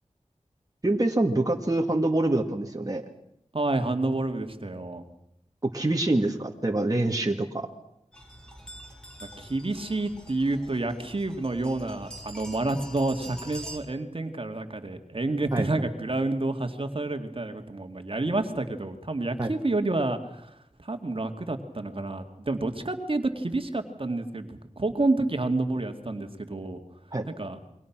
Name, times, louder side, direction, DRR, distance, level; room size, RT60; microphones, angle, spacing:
voice 1, 0.8-3.0 5.6-7.7 15.5-15.7 19.4-19.5 27.1-27.3, right 2 dB, 30° right, 2 dB, 1.9 m, -25 dB
voice 2, 3.5-5.0 9.4-26.8 27.4-27.6, right 2 dB, 45° right, 6 dB, 2.2 m, -29 dB
sound 1, 8.1-13.8, right 1 dB, 5° left, 4.5 m, -45 dB
28.5 x 23.0 x 6.1 m, 0.79 s
wide cardioid pair, 65°, 12 cm